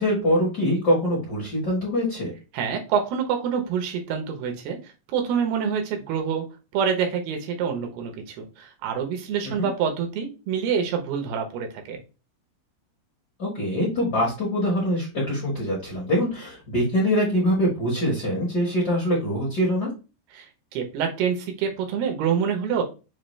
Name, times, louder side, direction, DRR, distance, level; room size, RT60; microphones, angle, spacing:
voice 1, 0.0-2.3 9.4-9.7 13.4-19.9, equal, 60° left, -4 dB, 1.0 m, -24 dB
voice 2, 2.5-4.8 5.1-6.5 6.7-12.0 20.3-20.5 20.7-22.8, right 7 dB, 80° right, 4 dB, 2.9 m, -26 dB
6.5 x 2.3 x 3.2 m, 0.30 s
omnidirectional pair, 4.4 m